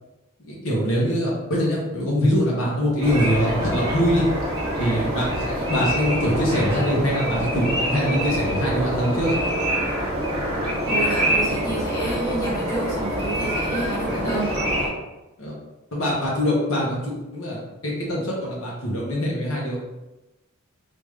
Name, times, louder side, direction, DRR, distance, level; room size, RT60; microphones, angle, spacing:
voice 1, 0.4-4.2 4.8-9.4 15.4-15.5 15.9-19.8, equal, 70° left, -4 dB, 1.0 m, -23 dB
sound 1, 3.0-14.9, equal, 20° right, 1.1 m, -25 dB
voice 2, 10.9-14.6, right 2 dB, 15° left, -8 dB, 1.1 m, -29 dB
3.5 x 2.6 x 3.1 m, 1.0 s
head